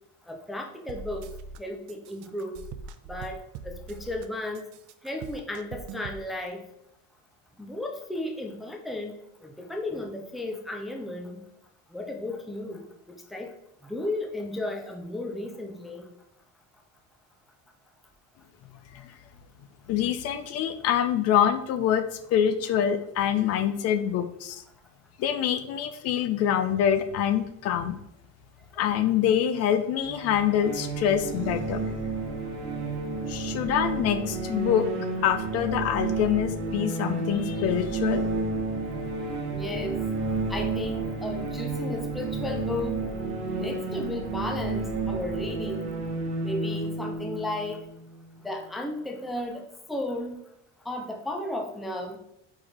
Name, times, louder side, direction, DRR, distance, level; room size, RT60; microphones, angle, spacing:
voice 1, 0.3-2.6 3.1-4.7 5.0-6.6 7.6-9.2 9.4-11.4 11.9-13.5 13.8-16.1 39.5-40.0 40.5-43.0 43.5-46.0 46.4-47.8 48.4-50.4 50.9-52.2, left 1 dB, ahead, 2 dB, 0.5 m, -34 dB
sound 1, 0.9-1.6 1.9-4.3 4.5-6.2, right 5 dB, 65° right, 0.6 m, -42 dB
voice 2, 19.9-24.6 25.2-28.0 28.8-31.8 33.3-34.9 35.2-38.2, left 9 dB, 50° left, 10 dB, 0.5 m, -25 dB
sound 2, 30.0-48.7, right 3 dB, 40° right, 1.1 m, -31 dB
4.8 x 4.6 x 4.3 m, 0.78 s
cardioid pair, 170°, 32 cm